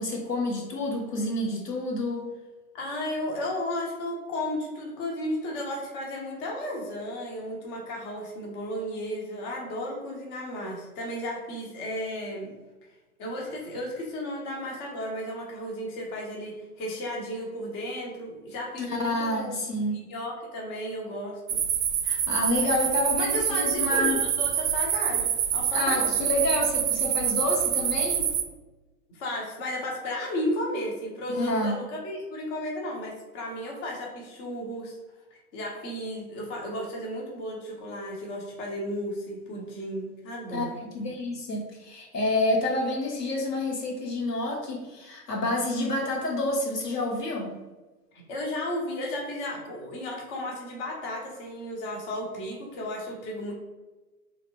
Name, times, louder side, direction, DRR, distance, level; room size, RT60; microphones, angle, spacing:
voice 1, 0.0-2.3 18.8-20.0 22.0-24.2 25.7-28.3 31.3-31.8 40.5-47.6, left 1 dB, 85° left, -1 dB, 1.0 m, -28 dB
voice 2, 2.7-12.5 13.2-19.5 19.9-21.6 23.2-26.2 29.1-34.9 35.3-40.7 48.3-53.5, left 1 dB, 30° left, -1 dB, 0.9 m, -34 dB
sound 1, 21.5-28.4, right 9 dB, 60° right, 0.5 m, -26 dB
3.3 x 2.9 x 2.8 m, 1.2 s
figure-of-eight pair, 105°, 46 cm